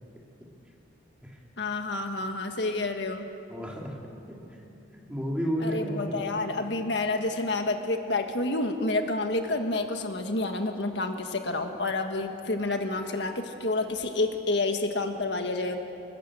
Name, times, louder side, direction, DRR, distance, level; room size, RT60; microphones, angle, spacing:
voice 1, 1.6-3.3 5.6-15.8, left 2 dB, 65° left, 5 dB, 1.6 m, -29 dB
voice 2, 3.5-4.0 4.3-4.6 4.9-6.2, equal, 5° right, -2 dB, 3.4 m, -32 dB
26.0 x 20.5 x 7.9 m, 2.8 s
head